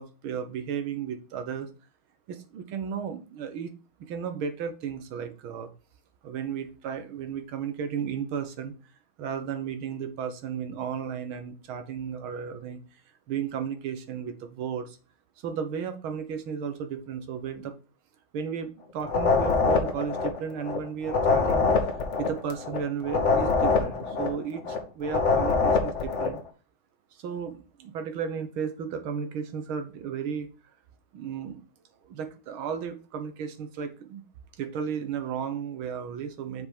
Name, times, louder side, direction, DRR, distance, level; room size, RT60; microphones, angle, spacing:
voice 1, 0.0-1.7 2.3-3.7 4.0-5.7 6.2-8.7 9.2-12.8 13.3-15.0 15.4-17.7 18.3-26.4 27.1-30.5 31.1-31.6 32.0-34.2 34.6-36.7, right 7 dB, 85° right, 8 dB, 1.9 m, -34 dB
sound 1, 19.0-20.8 21.0-24.8 25.0-26.4, left 4 dB, 40° left, 1.3 m, -24 dB
6.2 x 5.1 x 5.1 m, 0.34 s
omnidirectional pair, 2.2 m